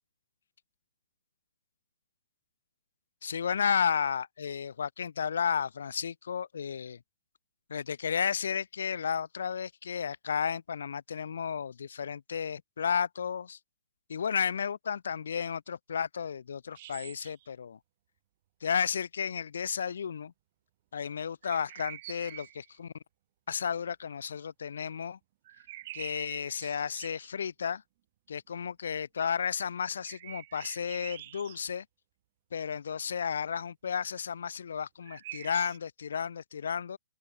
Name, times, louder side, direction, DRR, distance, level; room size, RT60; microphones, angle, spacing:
voice 1, 3.2-7.0 7.7-13.6 14.1-17.8 18.6-20.3 20.9-22.9 23.5-25.2 25.9-27.8 28.3-31.9 32.5-37.0, left 7 dB, 80° left, 0.9 m, -33 dB
sound 1, 16.7-17.5 21.4-22.7 25.5-27.3 30.0-31.6 35.0-35.8, right 16 dB, 40° right, 1.6 m, -46 dB
open air
hypercardioid pair, 160°, 0 cm